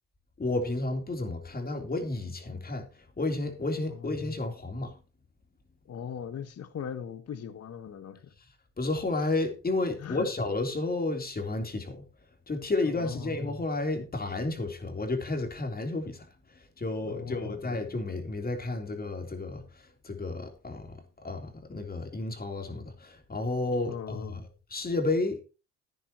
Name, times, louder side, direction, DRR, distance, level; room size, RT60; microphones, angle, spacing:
voice 1, 0.4-5.0 8.8-12.1 12.5-24.4 24.7-25.4, left 2 dB, 25° left, 3.4 m, -32 dB
voice 2, 5.8-8.3 10.0-10.3 13.0-13.4 17.1-17.6 23.9-24.4, left 7 dB, 50° left, 1.4 m, -39 dB
15.0 x 10.0 x 2.9 m
cardioid pair, 85°, 33 cm